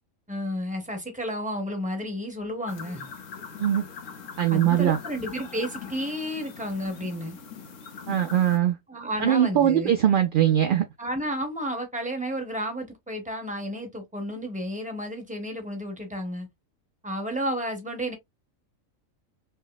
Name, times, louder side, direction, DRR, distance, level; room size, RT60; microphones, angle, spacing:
voice 1, 0.3-3.1 4.5-7.4 8.9-9.9 11.0-16.5 17.0-18.1, equal, 5° right, 1.0 m, -32 dB
sound 1, 2.7-8.6, left 6 dB, 70° left, 1.2 m, -41 dB
voice 2, 4.4-5.0 8.1-8.8 9.2-10.8, right 10 dB, 60° right, 0.6 m, -21 dB
5.6 x 2.1 x 2.2 m
omnidirectional pair, 1.4 m